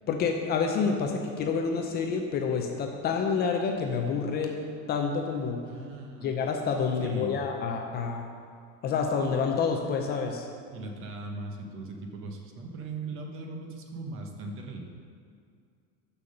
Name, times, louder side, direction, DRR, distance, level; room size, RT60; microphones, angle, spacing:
voice 1, 0.1-4.5 4.9-5.6 6.2-8.3 8.8-10.5, left 5 dB, 30° left, 3 dB, 0.5 m, -28 dB
voice 2, 5.7-6.3 7.0-7.4 10.7-14.8, right 3 dB, 40° right, 3 dB, 0.9 m, -39 dB
6.7 x 5.6 x 6.4 m, 2.3 s
cardioid pair, 175°, 34 cm